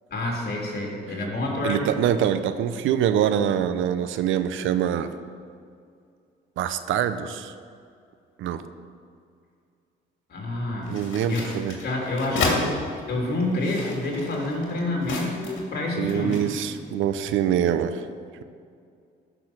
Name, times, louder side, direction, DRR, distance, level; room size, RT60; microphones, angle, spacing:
voice 1, 0.1-1.9 10.3-11.0 11.3-11.6 11.8-12.7 13.1-16.4, left 1 dB, 55° left, -1 dB, 3.3 m, -28 dB
voice 2, 1.6-5.1 6.6-7.5 8.4-8.6 10.9-11.8 16.0-18.0, right 9 dB, 80° right, 11 dB, 0.7 m, -24 dB
sound 1, 10.8-12.6 13.4-15.7 16.1-16.8, left 3 dB, 70° left, 2.5 m, -31 dB
14.0 x 6.1 x 6.0 m, 2.3 s
cardioid pair, 90°, 20 cm